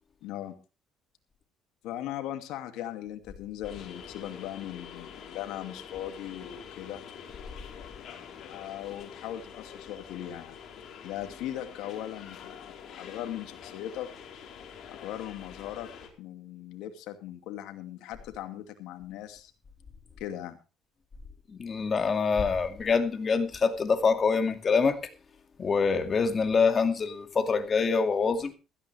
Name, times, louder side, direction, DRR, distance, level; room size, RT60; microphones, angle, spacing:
voice 1, 0.2-0.5 1.8-7.0 8.5-10.6 11.0-14.1 14.9-15.9 16.2-19.5 20.2-20.6, left 12 dB, 80° left, 2.4 m, -39 dB
sound 1, 3.6-16.1, left 7 dB, 60° left, 4.2 m, -46 dB
voice 2, 21.6-25.0 25.6-28.5, left 5 dB, 35° left, 2.3 m, -25 dB
16.0 x 14.5 x 3.4 m
cardioid pair, 100°, 0 cm